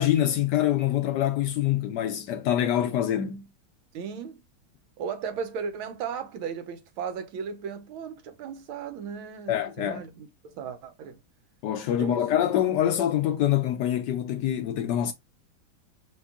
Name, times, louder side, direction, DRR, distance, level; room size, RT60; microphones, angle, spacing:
voice 1, 0.0-3.4 9.5-10.0 11.6-15.1, left 11 dB, 75° left, 1.0 m, -25 dB
voice 2, 3.9-4.4 5.0-11.2 12.0-12.3, right 6 dB, 90° right, 1.6 m, -36 dB
4.5 x 3.5 x 2.3 m
omnidirectional pair, 2.2 m